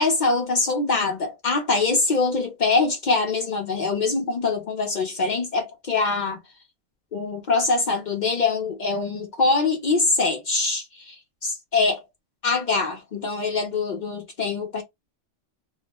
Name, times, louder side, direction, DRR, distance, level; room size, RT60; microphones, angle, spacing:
voice 1, 0.0-6.4 7.1-11.2 11.7-12.0 12.4-14.8, left 3 dB, 55° left, 0.5 m, -23 dB
2.3 x 2.0 x 3.3 m
omnidirectional pair, 1.2 m